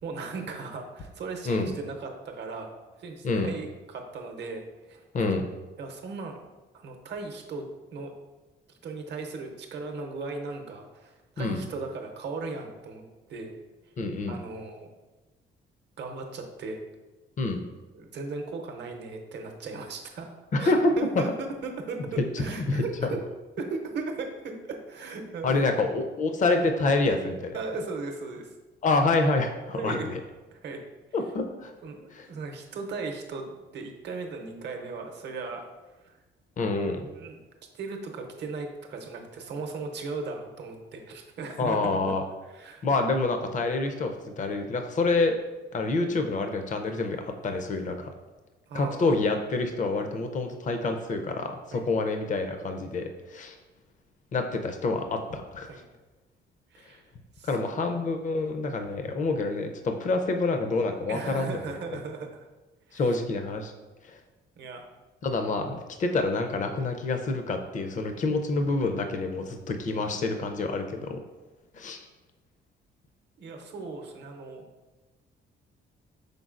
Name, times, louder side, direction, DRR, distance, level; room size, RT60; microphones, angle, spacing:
voice 1, 0.0-2.7 3.0-5.3 5.8-6.4 6.7-8.1 8.8-13.6 14.3-14.9 16.0-16.8 17.9-23.2 23.6-25.7 27.5-28.5 29.7-30.1 30.5-30.8 31.8-35.7 36.0-36.2 37.2-37.4 37.7-42.1 42.4-42.9 48.7-49.1 51.7-51.9 55.7-55.8 56.7-57.0 57.3-57.8 61.1-62.5 62.9-63.2 64.6-64.8 68.1-68.3 69.9-70.2 73.4-74.7, right 4 dB, 60° right, 3 dB, 0.7 m, -37 dB
voice 2, 14.0-14.4 17.4-17.6 20.5-20.9 22.3-22.8 25.4-27.6 28.8-30.2 31.1-31.7 32.1-32.3 36.6-37.0 41.6-42.2 42.8-45.3 45.7-48.1 48.7-53.6 54.3-55.7 57.4-61.6 62.9-63.7 64.0-64.2 65.2-71.2 71.7-72.1, left 3 dB, 40° left, 5 dB, 0.5 m, -27 dB
5.2 x 3.7 x 2.5 m, 1.2 s
cardioid pair, 90°, 20 cm